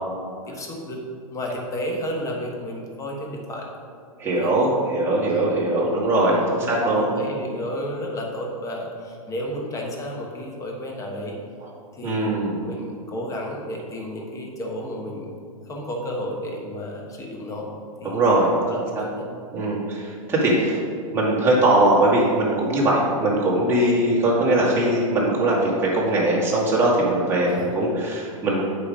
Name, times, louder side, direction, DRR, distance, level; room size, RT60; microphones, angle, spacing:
voice 1, 0.5-1.0 1.3-3.7 4.3-4.5 5.3-5.5 6.5-11.4 11.9-12.3 12.6-15.4 15.7-17.7 18.0-18.3 18.6-19.3 23.8-24.1 27.4-27.7, equal, 15° left, 0 dB, 1.3 m, -32 dB
voice 2, 4.2-7.1 12.0-12.6 18.0-18.5 18.9-19.0 19.5-20.8 21.1-28.6, right 1 dB, 15° right, -6 dB, 2.1 m, -21 dB
8.1 x 5.4 x 5.0 m, 2.2 s
hypercardioid pair, 135°, 18 cm